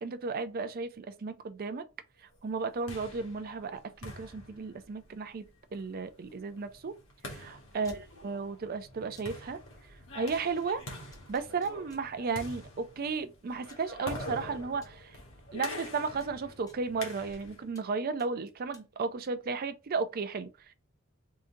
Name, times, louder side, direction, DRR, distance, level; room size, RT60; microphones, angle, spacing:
voice 1, 0.0-1.9 2.2-7.0 7.3-9.6 10.1-10.8 11.3-15.2 15.5-20.7, right 4 dB, 45° right, 0.4 m, -34 dB
sound 1, 2.5-17.7, left 1 dB, 65° left, 1.3 m, -45 dB
sound 2, 7.8-8.0 9.1-9.3 10.6-10.7 11.1-12.0 13.1-13.2 13.7-13.9 14.8-14.9 15.6-15.7 16.2-17.4 17.7-17.9 18.2-18.9, left 3 dB, 15° left, 0.7 m, -58 dB
3.8 x 2.7 x 3.7 m
head